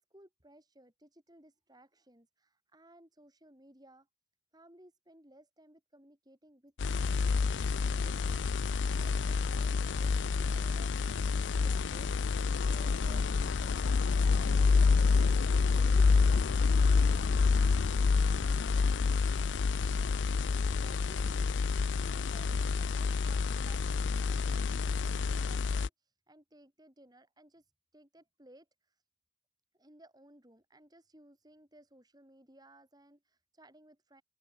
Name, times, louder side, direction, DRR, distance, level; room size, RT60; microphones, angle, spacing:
voice 1, 0.0-4.1 4.5-15.5 15.8-16.4 20.2-29.0 29.7-34.2, right 1 dB, 20° right, 4.7 m, -59 dB
sound 1, 6.8-25.9, left 4 dB, 85° left, 0.5 m, -28 dB
head